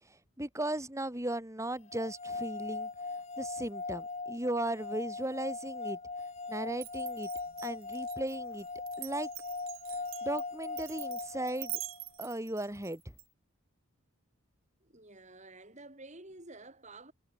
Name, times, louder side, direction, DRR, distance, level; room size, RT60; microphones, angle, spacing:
voice 1, 0.0-2.9 3.4-6.0 6.5-7.3 7.6-8.7 9.0-9.3 10.2-11.8 12.2-13.0, right 1 dB, 15° right, 2.9 m, -36 dB
sound 1, 1.9-12.0, left 3 dB, 30° left, 4.6 m, -40 dB
Glass, 6.8-13.2, right 18 dB, 70° right, 1.4 m, -44 dB
voice 2, 14.8-17.1, right 2 dB, 35° right, 4.3 m, -51 dB
head